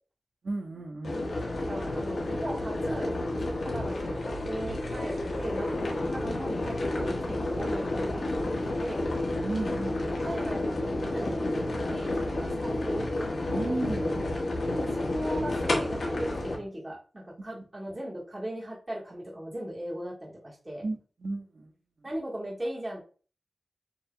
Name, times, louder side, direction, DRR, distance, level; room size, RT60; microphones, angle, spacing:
voice 1, 0.4-1.2 9.4-10.2 13.5-14.3 17.4-17.6 20.8-21.7, right 2 dB, 60° right, 1 dB, 1.0 m, -34 dB
sound 1, 1.0-16.6, left 1 dB, 80° left, 1.4 m, -30 dB
voice 2, 1.6-5.7 6.1-9.0 10.2-13.1 14.8-20.8 22.0-23.0, right 1 dB, 25° right, -5 dB, 1.7 m, -38 dB
7.6 x 2.8 x 2.3 m, 0.38 s
wide cardioid pair, 95°, 0 cm